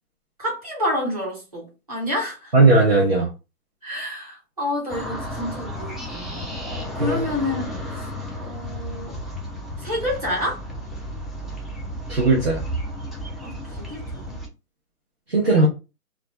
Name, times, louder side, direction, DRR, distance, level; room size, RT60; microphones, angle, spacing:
voice 1, 0.4-2.5 3.8-6.5 6.9-8.1 8.4-9.2 9.8-10.6 13.4-14.4, left 1 dB, 25° right, 0.9 m, -29 dB
voice 2, 2.5-3.3 7.0-7.2 12.1-12.6 15.3-15.7, right 3 dB, 45° right, 0.6 m, -17 dB
sound 1, 4.9-14.5, equal, ahead, 0.3 m, -33 dB
2.4 x 2.1 x 3.1 m
hypercardioid pair, 175°, 46 cm